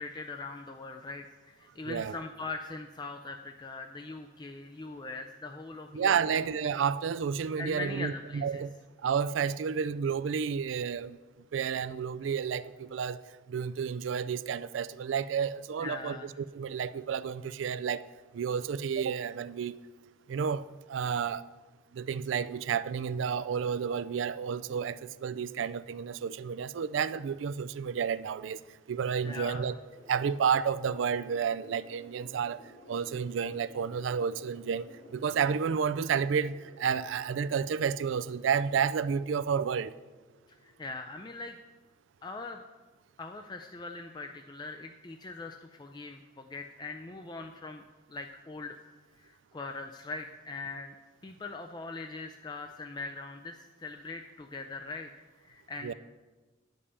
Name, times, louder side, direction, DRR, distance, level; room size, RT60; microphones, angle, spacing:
voice 1, 0.0-6.4 7.6-8.6 15.8-16.3 29.2-29.7 40.5-41.6 42.2-42.6 43.2-47.8 48.1-48.8 49.2-50.9 51.2-55.1 55.4-55.9, left 3 dB, 25° left, 0.4 m, -41 dB
voice 2, 1.8-2.2 5.9-8.7 9.0-11.2 11.5-13.2 13.5-18.0 18.3-19.7 20.3-21.5 21.9-28.6 28.9-29.8 30.1-32.6 32.9-34.8 35.1-39.9 55.8-55.9, right 7 dB, 85° right, 0.4 m, -31 dB
sound 1, 29.9-42.3, left 1 dB, 55° left, 1.9 m, -56 dB
9.9 x 5.3 x 6.8 m
head